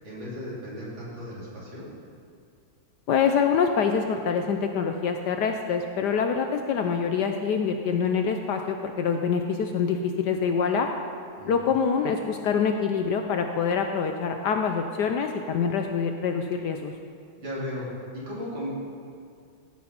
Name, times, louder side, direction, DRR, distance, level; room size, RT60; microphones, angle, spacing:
voice 1, 0.0-1.8 11.4-11.6 17.4-18.7, left 1 dB, 70° right, -7 dB, 3.9 m, -36 dB
voice 2, 3.1-10.9 11.5-16.9, left 6 dB, 70° left, 5 dB, 1.1 m, -25 dB
14.5 x 6.3 x 5.8 m, 2.3 s
omnidirectional pair, 2.2 m